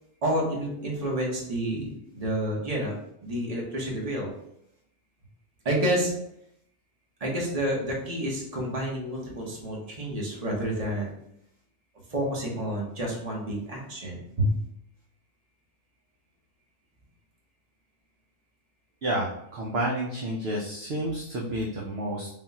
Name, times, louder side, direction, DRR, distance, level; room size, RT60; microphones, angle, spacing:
voice 1, 0.2-2.9 3.2-4.3 5.6-6.1 7.2-11.1 12.1-14.5, right 1 dB, 30° right, -2 dB, 1.0 m, -29 dB
voice 2, 19.0-22.3, right 1 dB, 60° right, -2 dB, 0.7 m, -30 dB
3.9 x 2.4 x 4.1 m, 0.76 s
omnidirectional pair, 1.6 m